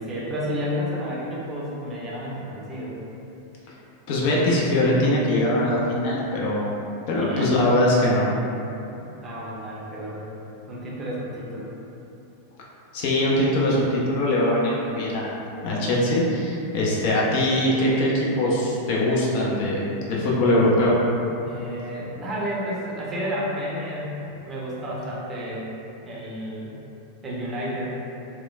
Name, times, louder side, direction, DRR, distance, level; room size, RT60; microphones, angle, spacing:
voice 1, 0.0-3.0 7.1-7.7 9.0-10.2 10.7-11.7 21.5-24.2 24.4-25.7 26.0-26.7 27.2-27.9, equal, 20° right, -6 dB, 0.5 m, -31 dB
voice 2, 4.1-6.7 7.1-8.3 12.9-15.4 15.6-21.0, left 1 dB, 45° left, -5 dB, 0.4 m, -22 dB
2.9 x 2.2 x 2.2 m, 2.8 s
figure-of-eight pair, 90°, 0 cm